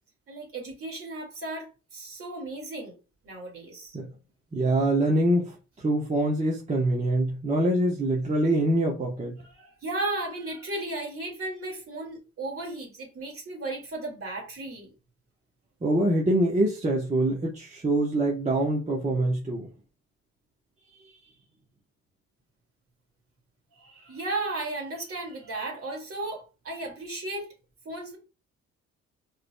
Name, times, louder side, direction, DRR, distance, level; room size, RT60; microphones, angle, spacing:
voice 1, 0.3-2.9 3.2-4.0 9.4-14.9 23.7-27.5 27.8-28.2, right 2 dB, 45° right, 2.1 m, -35 dB
voice 2, 4.5-5.5 5.8-9.4 15.8-19.7, right 1 dB, 25° right, 1.0 m, -24 dB
4.9 x 3.2 x 2.2 m
cardioid pair, 90°, 30 cm